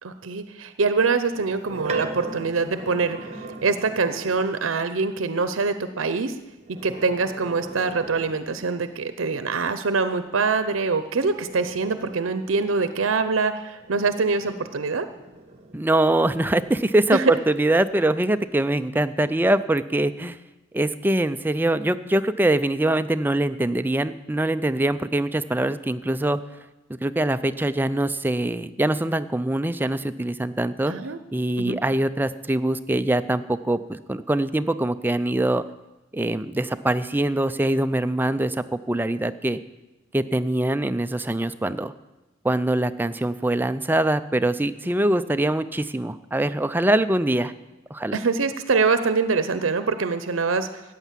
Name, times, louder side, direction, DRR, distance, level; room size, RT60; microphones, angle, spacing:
voice 1, 0.0-3.3 3.6-6.4 6.7-15.1 17.1-17.4 30.9-31.2 31.6-31.8 48.1-50.8, right 4 dB, 85° right, 10 dB, 0.7 m, -24 dB
sound 1, 1.3-4.6 6.5-8.9 10.8-16.0 16.6-18.3, right 2 dB, 35° right, 1.2 m, -39 dB
voice 2, 15.7-20.4 20.7-26.4 26.9-30.9 31.3-35.6 36.1-39.6 40.1-41.9 42.4-47.5 47.9-48.2, right 1 dB, 10° right, 11 dB, 0.4 m, -23 dB
14.0 x 9.1 x 7.4 m, 1.0 s
head